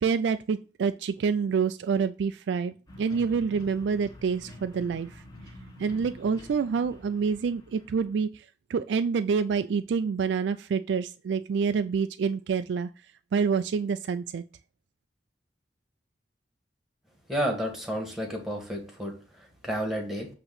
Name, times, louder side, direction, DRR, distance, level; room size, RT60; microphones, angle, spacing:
voice 1, 0.0-5.2 5.8-8.4 8.7-12.9 13.3-14.4, right 5 dB, 75° right, 10 dB, 0.3 m, -27 dB
sound 1, 2.9-8.2, left 1 dB, 20° left, 1.7 m, -47 dB
voice 2, 17.3-20.3, equal, ahead, 2 dB, 1.7 m, -31 dB
7.8 x 2.9 x 5.9 m, 0.38 s
head